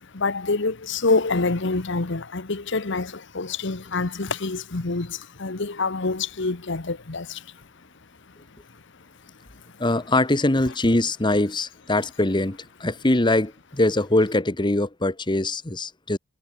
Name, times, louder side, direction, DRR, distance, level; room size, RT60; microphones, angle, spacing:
voice 1, 0.0-7.5, left 3 dB, 65° left, 1.2 m, -26 dB
voice 2, 9.8-16.2, left 2 dB, 25° left, 1.2 m, -22 dB
head